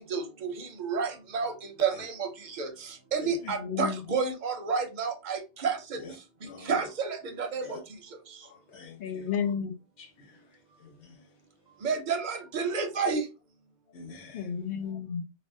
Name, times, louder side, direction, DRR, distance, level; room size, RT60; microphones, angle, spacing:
voice 1, 0.0-1.5 1.8-6.0 6.7-7.8 11.8-13.2, right 5 dB, 50° right, 0.6 m, -30 dB
voice 2, 3.4-4.1 7.6-7.7 9.0-9.7 14.3-15.2, left 7 dB, 55° left, 0.7 m, -32 dB
voice 3, 6.4-6.8 7.6-7.8 8.4-9.3 10.0-10.4 10.8-11.2 13.9-14.5, left 3 dB, 75° left, 1.1 m, -47 dB
3.3 x 2.1 x 2.5 m
omnidirectional pair, 1.2 m